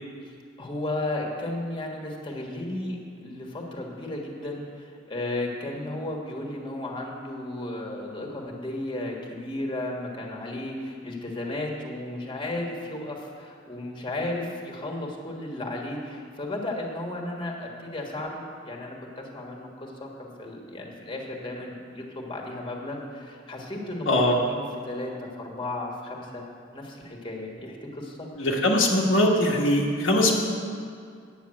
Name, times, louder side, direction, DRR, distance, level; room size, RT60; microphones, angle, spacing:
voice 1, 0.6-26.4 26.7-28.5, left 1 dB, 25° left, -1 dB, 1.6 m, -34 dB
voice 2, 24.0-24.4 28.4-30.4, left 1 dB, 80° left, -3 dB, 1.3 m, -21 dB
9.3 x 7.1 x 8.9 m, 2.2 s
head